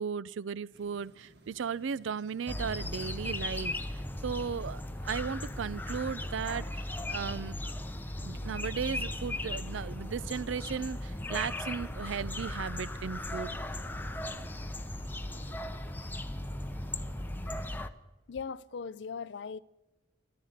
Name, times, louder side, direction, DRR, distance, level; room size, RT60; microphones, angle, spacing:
voice 1, 0.0-7.6 8.2-13.6, right 6 dB, 80° right, 0.4 m, -36 dB
sound 1, 0.7-17.8, right 1 dB, 60° right, 1.9 m, -59 dB
sound 2, 2.5-17.9, left 1 dB, 10° left, 0.7 m, -37 dB
voice 2, 18.3-19.6, left 5 dB, 65° left, 0.4 m, -39 dB
14.0 x 12.0 x 6.6 m
head